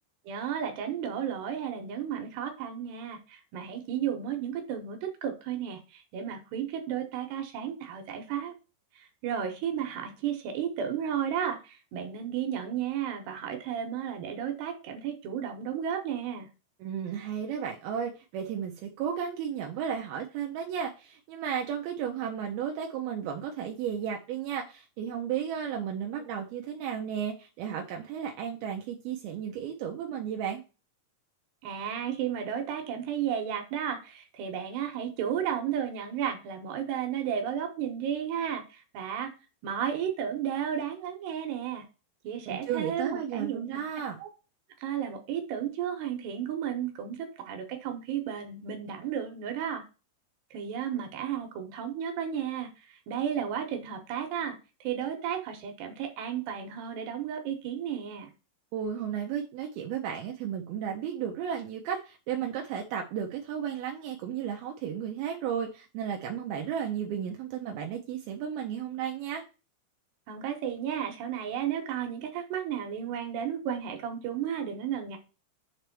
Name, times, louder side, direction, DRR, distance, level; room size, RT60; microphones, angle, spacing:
voice 1, 0.3-8.5 9.0-16.5 31.6-39.3 39.6-41.9 42.2-43.8 44.2-44.3 44.8-49.9 50.5-58.3 70.3-75.2, right 9 dB, 70° right, 5 dB, 2.9 m, -33 dB
voice 2, 16.8-30.6 42.5-44.2 58.7-69.4, right 8 dB, 85° right, 2 dB, 2.1 m, -34 dB
7.0 x 3.4 x 5.9 m, 0.32 s
omnidirectional pair, 5.4 m